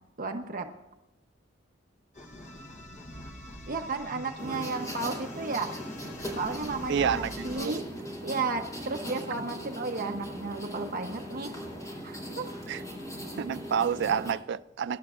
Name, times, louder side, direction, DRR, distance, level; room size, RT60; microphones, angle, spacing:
voice 1, 0.2-0.7 3.7-5.8 6.4-7.8 8.2-11.5 12.0-12.5, right 3 dB, 50° right, 0.9 m, -33 dB
sound 1, 2.1-7.7, left 1 dB, 40° left, 1.1 m, -45 dB
sound 2, 4.4-14.3, equal, 20° left, 4.2 m, -39 dB
voice 2, 6.9-7.8 12.7-12.8 13.4-15.0, right 7 dB, 65° right, 0.3 m, -29 dB
23.5 x 11.5 x 2.5 m
head